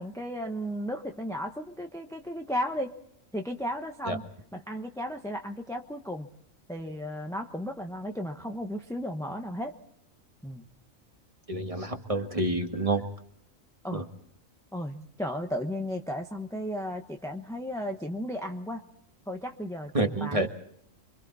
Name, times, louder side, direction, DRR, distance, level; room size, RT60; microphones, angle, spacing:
voice 1, 0.0-2.9 3.3-4.2 4.5-6.3 6.7-9.7 10.4-10.7 13.8-14.0 14.7-18.8 19.3-20.5, equal, 5° left, 3 dB, 1.0 m, -34 dB
voice 2, 11.5-13.0 13.9-14.0 19.9-20.5, right 2 dB, 25° right, 4 dB, 1.8 m, -28 dB
30.0 x 24.5 x 4.2 m, 0.70 s
omnidirectional pair, 1.4 m